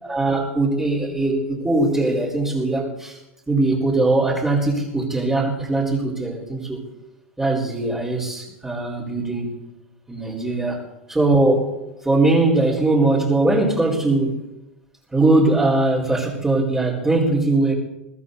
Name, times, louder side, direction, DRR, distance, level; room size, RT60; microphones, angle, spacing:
voice 1, 0.0-3.2 3.5-6.8 7.4-9.6 10.1-10.8 11.1-11.7 12.0-14.5 15.1-17.7, right 2 dB, 10° right, -6 dB, 4.7 m, -20 dB
22.5 x 14.5 x 4.2 m, 0.93 s
hypercardioid pair, 110°, 7 cm